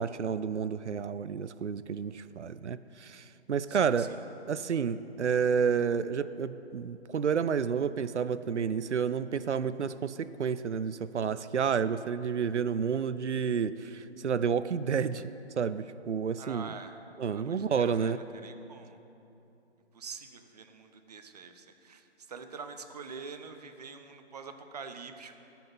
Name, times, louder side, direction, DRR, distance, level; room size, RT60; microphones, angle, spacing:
voice 1, 0.0-4.1 4.5-15.3 15.6-16.7 17.2-18.2, right 6 dB, 90° right, 14 dB, 0.5 m, -30 dB
voice 2, 3.7-4.1 16.4-16.9 17.3-19.0 19.9-25.4, right 5 dB, 35° right, 8 dB, 0.7 m, -45 dB
15.0 x 6.0 x 5.5 m, 2.9 s
figure-of-eight pair, 145°, 34 cm